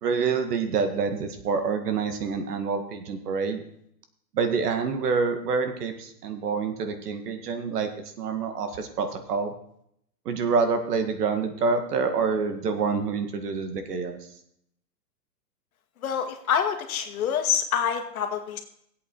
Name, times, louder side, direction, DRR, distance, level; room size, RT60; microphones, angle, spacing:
voice 1, 0.0-3.6 4.3-7.9 8.2-9.5 10.3-14.2, right 5 dB, 65° right, 7 dB, 2.0 m, -27 dB
voice 2, 16.0-18.6, left 8 dB, 55° left, 5 dB, 1.8 m, -26 dB
17.0 x 8.3 x 4.6 m, 0.72 s
hypercardioid pair, 165°, 50 cm